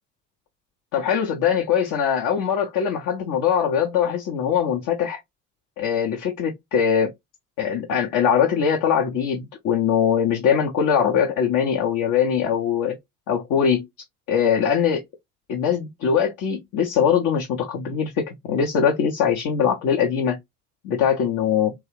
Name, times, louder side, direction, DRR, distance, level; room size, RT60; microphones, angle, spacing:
voice 1, 0.9-5.2 5.8-7.1 7.6-13.0 13.3-13.9 14.3-15.1 15.5-20.4 20.8-21.7, left 7 dB, 45° left, 0.8 m, -22 dB
3.1 x 2.3 x 3.1 m
figure-of-eight pair, 55°, 44 cm